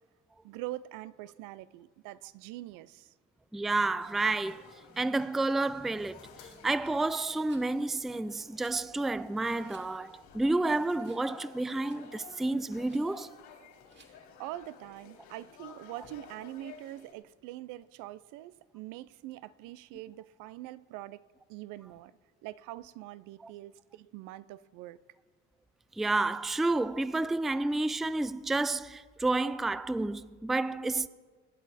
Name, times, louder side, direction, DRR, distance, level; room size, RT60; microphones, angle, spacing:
voice 1, 0.4-3.1 14.1-21.2 21.5-25.0, right 16 dB, 75° right, 0.6 m, -44 dB
voice 2, 3.5-4.6 4.9-6.2 6.6-13.3 23.4-23.5 26.0-31.1, right 2 dB, ahead, 0.3 m, -30 dB
sound 1, 4.0-17.1, left 6 dB, 70° left, 3.1 m, -53 dB
Rattle, 7.5-7.8 8.6-8.8 9.6-9.9 10.4-10.5 11.0-11.3 11.6-12.1 12.8-13.1 13.9-14.1, right 4 dB, 35° right, 2.5 m, -60 dB
23.0 x 8.9 x 4.2 m
supercardioid pair, 80°, 31 cm